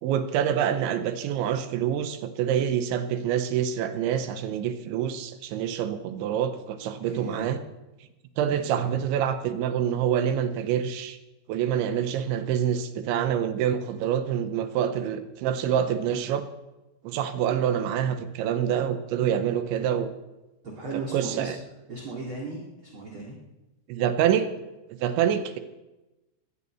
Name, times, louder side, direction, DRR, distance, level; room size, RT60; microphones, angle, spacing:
voice 1, 0.0-7.6 8.4-11.2 11.5-16.5 17.0-20.1 20.9-21.6 23.9-24.5 24.9-25.6, right 9 dB, 85° right, 9 dB, 3.2 m, -26 dB
voice 2, 6.9-7.5 8.4-8.9 20.6-21.5 21.9-23.4, right 3 dB, 40° right, -2 dB, 1.9 m, -37 dB
20.0 x 7.0 x 8.6 m, 1.0 s
omnidirectional pair, 5.4 m